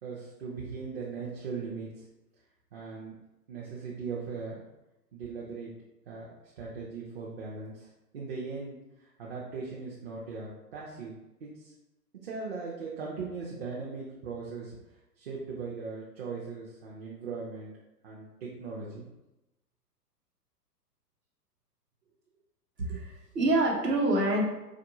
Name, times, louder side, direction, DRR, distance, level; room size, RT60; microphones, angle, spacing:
voice 1, 0.0-2.1 2.7-3.2 3.5-4.6 5.1-5.7 6.1-6.3 6.6-11.7 12.2-14.8 15.2-17.7 18.0-19.1, right 4 dB, 40° right, -4 dB, 0.6 m, -39 dB
voice 2, 22.8-24.4, right 2 dB, 75° right, -2 dB, 1.1 m, -26 dB
3.9 x 2.5 x 2.6 m, 0.96 s
figure-of-eight pair, 110°, 48 cm